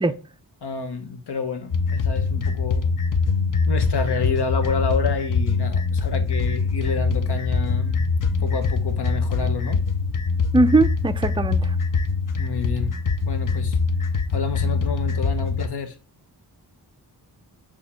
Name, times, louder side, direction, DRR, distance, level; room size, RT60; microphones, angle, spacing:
voice 1, 0.6-2.9 3.7-8.1 8.4-9.8 12.4-12.9 13.2-13.8 14.3-16.0, left 4 dB, 85° left, 1.0 m, -29 dB
sound 1, 1.7-15.7, left 4 dB, 55° left, 0.7 m, -23 dB
voice 2, 10.5-11.7, right 2 dB, 15° right, 0.3 m, -19 dB
6.5 x 3.0 x 5.7 m
wide cardioid pair, 130°, 39 cm